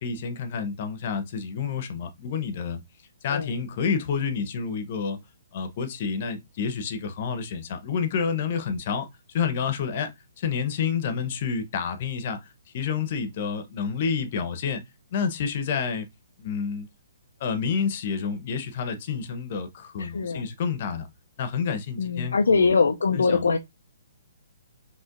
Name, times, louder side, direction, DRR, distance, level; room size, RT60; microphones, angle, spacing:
voice 1, 0.0-2.8 3.2-5.2 5.5-10.1 10.4-12.4 12.7-14.8 15.1-16.1 16.4-16.9 17.4-21.1 21.4-22.7 23.1-23.5, left 6 dB, 45° left, 0.9 m, -29 dB
voice 2, 20.0-20.5 22.0-23.6, left 4 dB, 65° left, 0.4 m, -22 dB
5.2 x 3.1 x 2.5 m
figure-of-eight pair, 125°, 0 cm